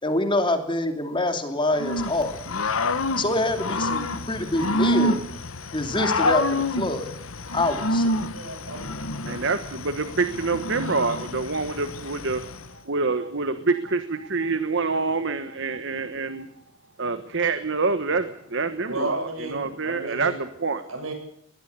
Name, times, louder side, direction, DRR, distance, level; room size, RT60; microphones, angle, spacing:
voice 1, 0.0-2.4 3.2-5.2 5.7-7.1 7.5-8.2, left 1 dB, 25° left, 6 dB, 2.7 m, -25 dB
Growling / Cricket, 1.7-12.7, left 2 dB, 90° left, 1.5 m, -28 dB
voice 2, 8.2-8.8 18.8-20.4 20.9-21.1, right 2 dB, 85° right, 4 dB, 8.0 m, -33 dB
voice 3, 9.3-12.4 12.9-16.5 17.0-20.8, right 4 dB, 60° right, 10 dB, 1.3 m, -26 dB
20.5 x 20.5 x 6.9 m, 0.74 s
head